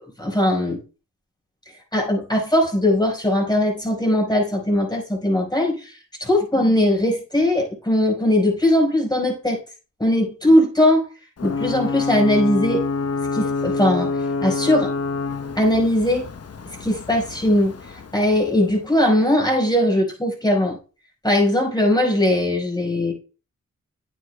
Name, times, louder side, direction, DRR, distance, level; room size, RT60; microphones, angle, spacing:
voice 1, 0.2-0.8 1.9-5.9 6.2-9.6 10.0-11.1 11.4-12.8 13.3-14.1 14.4-14.9 15.5-16.3 16.8-17.7 18.1-20.8 21.2-23.1, left 1 dB, 10° left, -1 dB, 4.9 m, -19 dB
Ocean / Boat Water vehicle / Alarm, 11.4-18.9, left 4 dB, 50° left, 1.0 m, -27 dB
9.7 x 8.4 x 2.3 m, 0.34 s
supercardioid pair, 45°, 32 cm